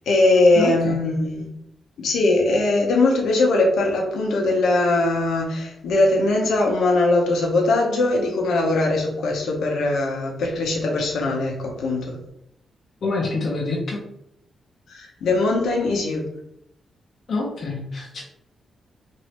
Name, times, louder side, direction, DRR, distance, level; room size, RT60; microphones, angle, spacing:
voice 1, 0.0-1.5 2.0-12.2 14.9-16.3, left 2 dB, 90° left, 0 dB, 0.8 m, -20 dB
voice 2, 0.5-1.0 13.0-14.0 17.3-18.2, left 3 dB, 55° left, -4 dB, 0.7 m, -26 dB
3.1 x 2.6 x 2.9 m, 0.77 s
cardioid pair, 120°, 0 cm